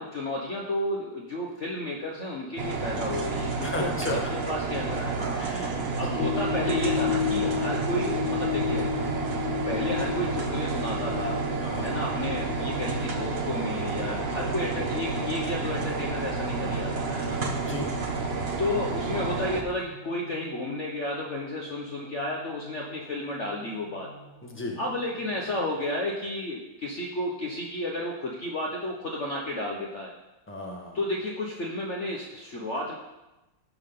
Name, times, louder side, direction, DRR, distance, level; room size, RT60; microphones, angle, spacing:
voice 1, 0.0-3.9 4.5-8.9 9.7-11.4 11.8-17.4 18.6-24.1 24.8-30.1 30.9-33.0, left 1 dB, 45° left, -2 dB, 1.2 m, -32 dB
sound 1, 2.6-19.6, right 4 dB, 40° right, 1.1 m, -30 dB
voice 2, 3.6-4.2 5.4-6.2 11.6-11.9 17.6-17.9 24.4-24.8 30.5-31.0, left 1 dB, 5° left, -1 dB, 1.3 m, -34 dB
sound 2, 6.2-25.6, left 5 dB, 75° left, 1.9 m, -35 dB
15.5 x 6.1 x 3.8 m, 1.0 s
omnidirectional pair, 2.0 m